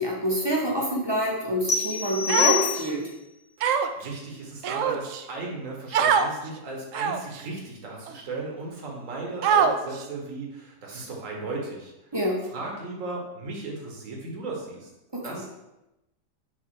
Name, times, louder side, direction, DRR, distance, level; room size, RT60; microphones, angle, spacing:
voice 1, 0.0-3.0 12.1-12.4 15.1-15.4, equal, 20° right, -2 dB, 0.7 m, -26 dB
sound 1, 1.7-3.2, left 8 dB, 75° left, 0.3 m, -26 dB
Human voice, 2.3-2.9 3.6-4.1 4.6-5.2 5.9-6.3 6.9-7.4 8.1-8.2 9.4-10.0, right 7 dB, 80° right, 0.6 m, -23 dB
voice 2, 3.6-11.9 12.5-14.9 15.2-15.5, right 3 dB, 50° right, -1 dB, 1.6 m, -36 dB
6.4 x 3.5 x 4.8 m, 0.94 s
omnidirectional pair, 1.9 m